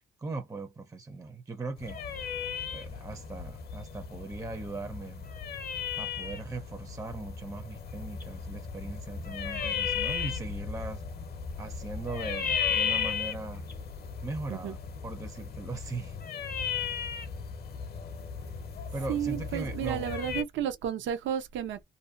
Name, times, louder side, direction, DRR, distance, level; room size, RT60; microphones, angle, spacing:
voice 1, 0.2-2.3 2.7-5.3 6.0-11.0 11.6-13.6 14.2-14.8 15.0-16.2 16.8-17.0 18.9-20.1, right 3 dB, 15° right, 0.5 m, -39 dB
sound 1, 1.8-20.4, left 7 dB, 50° left, 0.7 m, -35 dB
voice 2, 19.1-21.8, right 9 dB, 70° right, 0.6 m, -32 dB
2.6 x 2.1 x 2.6 m
cardioid pair, 90°, 20 cm